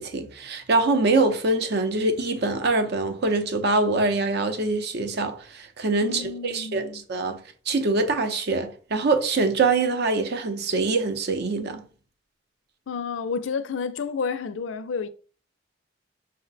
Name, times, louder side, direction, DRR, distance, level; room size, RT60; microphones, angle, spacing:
voice 1, 0.0-7.4 7.7-11.8, right 3 dB, 60° right, 0.6 m, -24 dB
voice 2, 6.0-7.0 12.9-15.1, left 5 dB, 85° left, 0.4 m, -30 dB
5.5 x 2.1 x 3.9 m
head